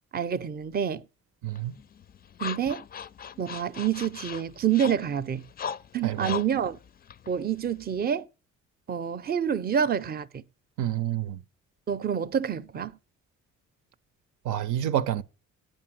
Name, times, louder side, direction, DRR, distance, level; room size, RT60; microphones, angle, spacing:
voice 1, 0.1-1.0 2.4-2.8 3.4-5.4 5.9-6.8 7.3-8.3 8.9-10.4 11.9-13.0, right 8 dB, 30° right, 0.6 m, -27 dB
voice 2, 1.4-1.7 6.0-6.3 10.8-11.4 14.4-15.2, right 11 dB, 85° right, 0.7 m, -28 dB
sound 1, 1.6-8.1, left 8 dB, 30° left, 0.4 m, -40 dB
8.8 x 5.4 x 7.5 m
cardioid pair, 90°, 30 cm